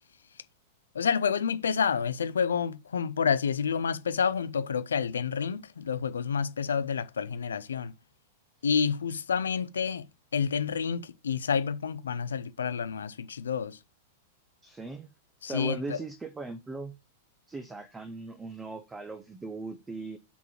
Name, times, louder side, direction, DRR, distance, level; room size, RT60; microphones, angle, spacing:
voice 1, 0.9-7.9 8.6-13.8 15.4-16.0, left 6 dB, 70° left, 0.6 m, -29 dB
voice 2, 14.6-15.1 15.4-16.9 17.5-20.2, right 3 dB, 10° right, 0.7 m, -39 dB
6.0 x 3.8 x 5.8 m
figure-of-eight pair, 100°, 0 cm